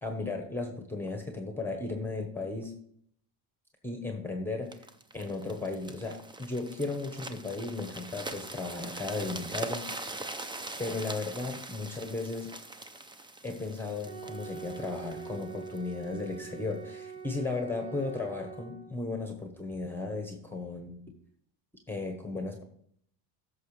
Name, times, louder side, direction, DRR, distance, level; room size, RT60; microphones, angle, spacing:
voice 1, 0.0-2.7 3.8-4.7 5.1-9.9 10.8-12.5 13.4-21.0 21.9-22.6, left 3 dB, 5° left, 4 dB, 1.0 m, -35 dB
sound 1, 4.7-16.6 17.2-17.3, right 2 dB, 10° right, 0.5 m, -42 dB
Wind instrument woodwind instrument, 14.0-18.9, right 7 dB, 40° right, 4.1 m, -44 dB
14.0 x 6.4 x 3.2 m, 0.66 s
cardioid pair, 130°, 45 cm